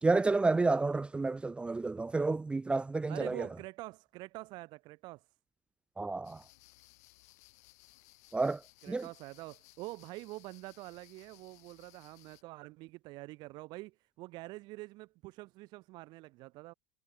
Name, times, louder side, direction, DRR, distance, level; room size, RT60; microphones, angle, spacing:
voice 1, 0.0-3.5 6.0-6.4 8.3-8.6 8.9-9.1, right 3 dB, 10° right, 0.6 m, -30 dB
voice 2, 3.1-5.3 8.8-16.7, right 21 dB, 50° right, 5.3 m, -46 dB
sound 1, 6.2-12.4, left 22 dB, 65° left, 7.8 m, -61 dB
hypercardioid pair, 90°, 9 cm